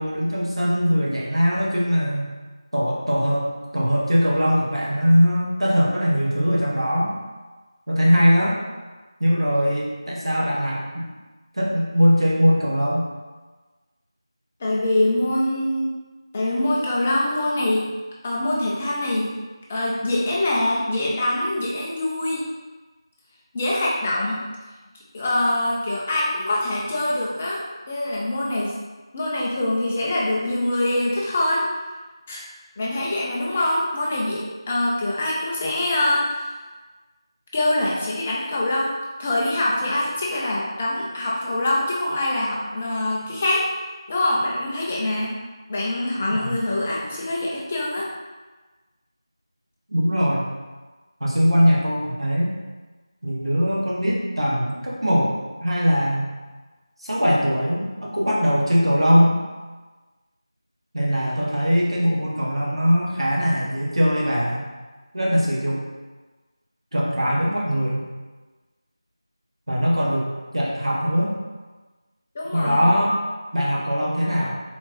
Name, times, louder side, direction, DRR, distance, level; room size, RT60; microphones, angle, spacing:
voice 1, 0.0-2.3 2.7-7.2 7.9-8.6 9.2-11.1 11.5-13.1 46.4-46.5 49.9-50.5 51.2-52.5 53.2-56.3 57.0-59.4 60.9-64.7 65.1-65.8 66.9-68.1 69.7-71.4 72.5-73.2 73.5-74.6, equal, 75° right, -4 dB, 1.2 m, -21 dB
voice 2, 14.6-15.9 16.3-17.9 18.2-19.3 19.7-22.4 23.5-24.4 25.1-28.7 29.1-31.7 32.3-32.4 32.8-36.6 37.5-43.7 44.1-45.4 45.7-48.1 72.3-73.0, left 1 dB, 10° left, -4 dB, 0.4 m, -24 dB
4.3 x 3.9 x 3.1 m, 1.3 s
figure-of-eight pair, 170°, 3 cm